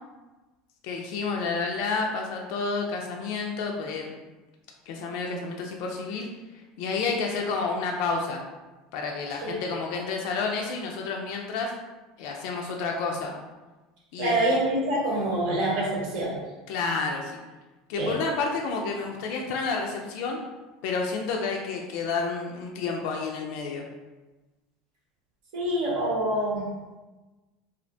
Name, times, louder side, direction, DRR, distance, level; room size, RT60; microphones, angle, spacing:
voice 1, 0.8-4.1 4.9-6.3 6.5-8.4 8.9-11.7 12.2-13.3 14.1-14.4 16.7-17.4 17.9-20.4 20.8-23.8, left 4 dB, 70° left, 1 dB, 0.3 m, -30 dB
voice 2, 14.2-16.4 18.0-18.2 25.5-26.7, right 1 dB, 75° right, -4 dB, 0.9 m, -26 dB
2.4 x 2.1 x 2.6 m, 1.2 s
supercardioid pair, 105°, 0 cm